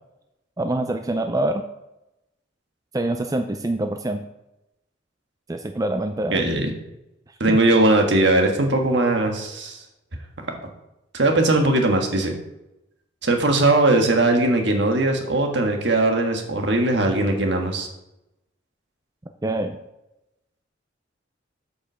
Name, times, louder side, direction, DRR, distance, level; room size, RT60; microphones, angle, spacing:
voice 1, 0.6-1.6 2.9-4.2 5.5-6.4 7.5-7.6 19.4-19.8, right 1 dB, 20° right, 6 dB, 0.4 m, -25 dB
voice 2, 6.3-6.7 7.4-9.8 10.4-10.5 11.1-12.3 13.2-17.9, right 2 dB, 60° right, 4 dB, 1.5 m, -19 dB
8.3 x 5.6 x 6.3 m, 0.90 s
head